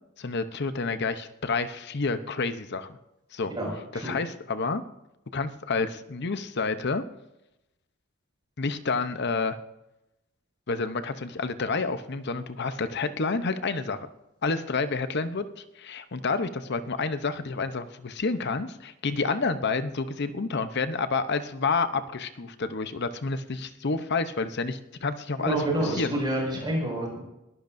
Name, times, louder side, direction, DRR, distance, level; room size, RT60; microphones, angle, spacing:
voice 1, 0.2-3.0 3.3-3.5 3.9-4.8 5.3-7.0 8.6-9.6 10.7-14.1 14.4-26.1, left 4 dB, 55° left, 11 dB, 0.8 m, -29 dB
voice 2, 3.5-4.1 25.4-27.2, right 1 dB, 20° right, -2 dB, 5.6 m, -28 dB
21.0 x 14.0 x 2.6 m, 0.91 s
head